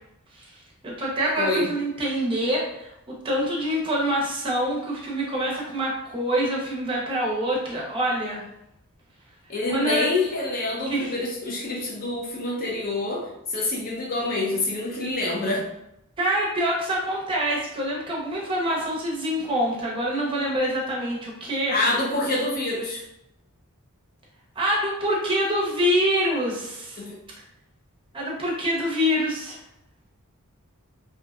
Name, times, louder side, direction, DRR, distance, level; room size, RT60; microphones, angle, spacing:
voice 1, 0.8-2.9 3.2-8.4 9.7-10.1 10.9-11.1 16.2-21.7 24.6-27.0 28.1-29.6, equal, 25° right, -4 dB, 0.6 m, -25 dB
voice 2, 1.4-1.7 9.5-15.6 21.7-23.0 27.0-27.2, left 2 dB, 40° left, -3 dB, 0.6 m, -26 dB
2.6 x 2.1 x 2.3 m, 0.82 s
head